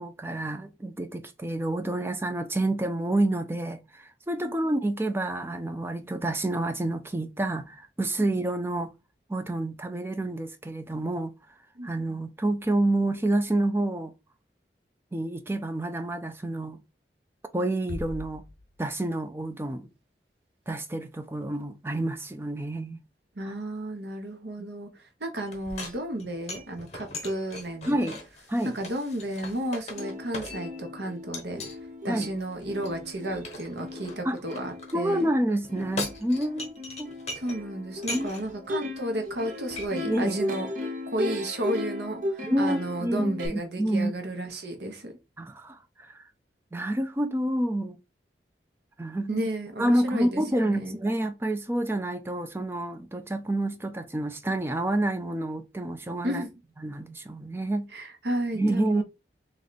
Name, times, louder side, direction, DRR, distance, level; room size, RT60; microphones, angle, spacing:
voice 1, 0.0-8.9 9.3-11.3 11.8-14.1 15.1-16.8 17.5-18.4 18.8-19.9 20.7-23.0 23.4-23.5 24.6-24.7 27.9-28.2 28.5-28.8 32.1-32.3 34.2-34.4 34.9-37.1 38.1-38.4 40.1-40.4 42.4-44.1 45.4-46.2 46.7-48.0 49.0-49.5 49.8-56.4 56.8-57.9 58.5-59.0, right 1 dB, 15° right, 0.4 m, -28 dB
voice 2, 11.8-12.2 23.4-28.0 28.6-31.6 32.0-35.3 37.3-45.1 49.3-51.0 56.2-56.5 57.9-59.0, right 1 dB, 75° right, 1.0 m, -33 dB
sound 1, 17.9-19.5, left 2 dB, 65° left, 0.6 m, -41 dB
sound 2, 25.5-30.9 31.3-31.8 32.2-34.9 35.6-37.6 37.9-38.5 39.0-39.1 39.3-39.9, left 2 dB, 40° left, 0.9 m, -39 dB
Plucked string instrument, 29.6-29.7 29.9-43.5, left 1 dB, 45° right, 0.8 m, -36 dB
3.2 x 3.0 x 4.0 m
head